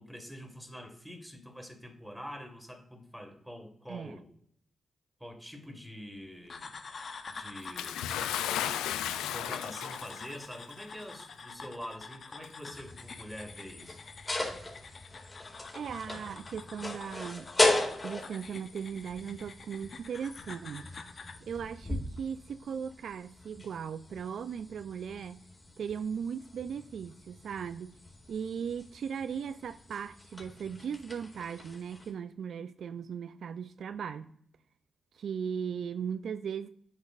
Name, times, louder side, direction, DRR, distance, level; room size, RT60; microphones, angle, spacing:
voice 1, 0.0-4.3 5.2-6.8 7.3-8.1 9.1-14.0, equal, 5° right, 1.7 m, -45 dB
voice 2, 3.9-4.2 9.0-9.2 15.7-17.5 18.0-21.0 21.4-25.4 25.8-27.9 28.3-34.3 35.1-36.7, right 7 dB, 70° right, 0.3 m, -38 dB
sound 1, 6.5-21.4, left 4 dB, 55° left, 0.8 m, -47 dB
Bathtub (filling or washing) / Splash splatter, 7.8-10.4 11.3-11.4 12.4-12.5, left 11 dB, 85° left, 0.3 m, -34 dB
sound 2, 12.7-32.1, left 2 dB, 25° left, 2.2 m, -37 dB
8.1 x 5.0 x 2.5 m
hypercardioid pair, 40°, 0 cm